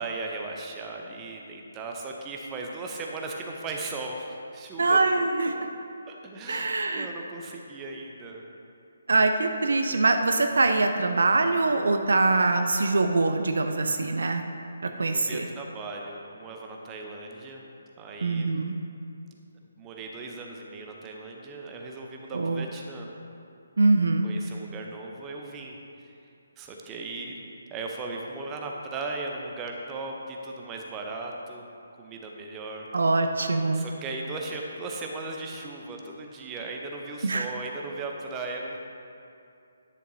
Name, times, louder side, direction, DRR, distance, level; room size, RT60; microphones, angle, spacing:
voice 1, 0.0-5.0 5.4-5.6 6.1-8.4 13.9-14.2 14.8-17.7 18.0-18.5 19.8-23.1 24.2-26.2 26.6-27.4 27.7-31.7 32.0-32.9 33.7-38.8, right 3 dB, 15° right, 1 dB, 0.7 m, -37 dB
voice 2, 4.8-5.5 6.5-7.1 9.1-14.4 15.0-15.4 18.2-18.7 22.3-22.7 23.8-24.3 32.9-33.8 37.2-37.5, right 3 dB, 60° right, 6 dB, 0.4 m, -23 dB
10.5 x 6.5 x 2.7 m, 2.6 s
figure-of-eight pair, 140°, 0 cm